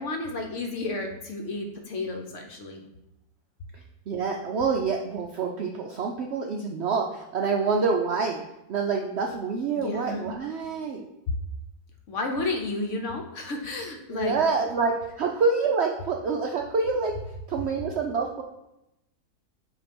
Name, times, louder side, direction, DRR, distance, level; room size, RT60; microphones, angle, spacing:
voice 1, 0.0-2.8 9.8-10.3 12.1-14.4, left 2 dB, 55° left, 3 dB, 1.0 m, -32 dB
voice 2, 4.1-8.4 8.7-11.0 14.1-17.2 17.5-18.4, right 4 dB, 70° right, 2 dB, 0.6 m, -27 dB
8.1 x 2.8 x 5.2 m, 0.89 s
omnidirectional pair, 1.7 m